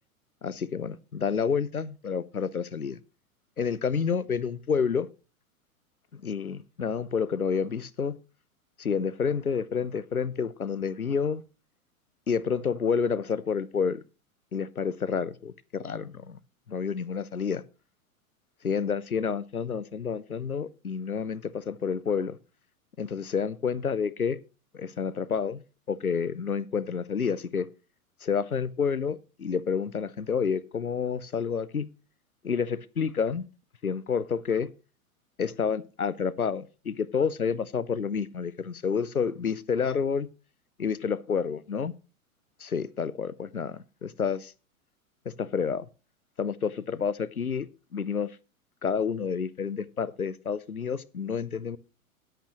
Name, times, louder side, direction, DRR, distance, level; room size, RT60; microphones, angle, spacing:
voice 1, 0.4-3.0 3.6-5.1 6.1-8.2 8.8-11.4 12.3-14.0 14.5-16.4 16.7-17.6 18.6-22.4 23.0-24.4 24.7-25.6 25.9-27.7 28.2-31.9 32.4-33.4 33.8-34.7 35.4-40.3 40.8-41.9 42.6-44.5 45.2-45.9 46.4-47.7 47.9-48.3 48.8-51.8, left 6 dB, 85° left, 0.9 m, -29 dB
17.0 x 8.1 x 3.0 m
figure-of-eight pair, 100°, 43 cm